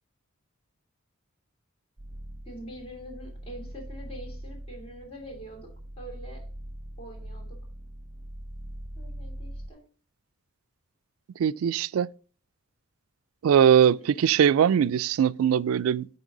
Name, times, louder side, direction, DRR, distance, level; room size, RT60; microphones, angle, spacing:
sound 1, 2.0-9.7, right 1 dB, 40° right, 0.9 m, -41 dB
voice 1, 2.4-5.7 6.0-6.5 7.0-7.6 9.0-9.8 14.0-14.2, equal, 30° left, 2.7 m, -44 dB
voice 2, 11.4-12.1 13.4-16.1, right 8 dB, 80° right, 0.3 m, -21 dB
9.0 x 5.4 x 3.8 m
head